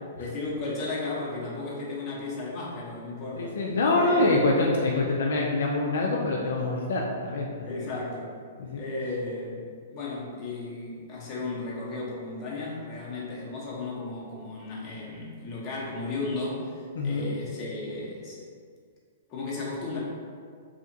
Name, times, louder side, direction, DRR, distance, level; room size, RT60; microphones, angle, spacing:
voice 1, 0.2-3.6 4.0-4.4 7.6-8.3 8.8-18.4 19.3-20.0, left 2 dB, 30° left, -6 dB, 0.7 m, -34 dB
voice 2, 3.3-7.9 8.6-8.8 17.0-17.3, left 2 dB, 75° left, -1 dB, 0.3 m, -25 dB
2.8 x 2.4 x 2.6 m, 2.1 s
hypercardioid pair, 140°, 0 cm